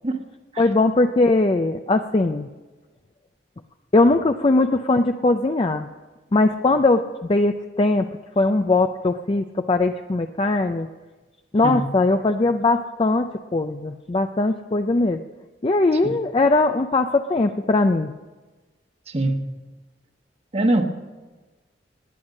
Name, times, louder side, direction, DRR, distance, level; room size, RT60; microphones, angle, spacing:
voice 1, 0.6-2.5 3.9-5.9 6.3-7.0 7.3-8.1 8.4-10.9 11.5-15.2 15.6-18.1, left 2 dB, 30° left, 7 dB, 0.5 m, -20 dB
voice 2, 19.1-19.5 20.5-20.8, right 1 dB, 35° right, 5 dB, 1.3 m, -23 dB
18.5 x 9.8 x 6.4 m, 1.2 s
head